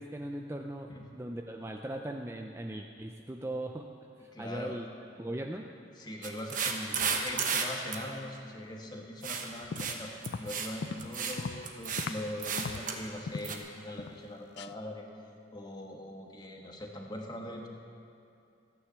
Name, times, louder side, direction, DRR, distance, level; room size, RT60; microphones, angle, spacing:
voice 1, 0.0-3.9 4.2-4.9 5.2-5.6, right 1 dB, 15° right, 3 dB, 0.4 m, -39 dB
voice 2, 4.3-4.8 5.5-5.6 6.0-10.1 10.4-15.0 15.5-17.7, left 1 dB, 20° left, 1 dB, 1.4 m, -41 dB
sound 1, 6.2-7.6 7.9-8.0 9.2-9.5 9.8-10.0 10.2-10.7 11.0-11.4 11.6-12.1 12.4-13.0 13.4-13.6, right 6 dB, 40° right, 1.2 m, -32 dB
sound 2, 9.5-12.3 12.6-13.6 14.0-14.3 14.6-14.7, left 4 dB, 55° left, 0.4 m, -39 dB
15.0 x 9.7 x 7.4 m, 2.5 s
head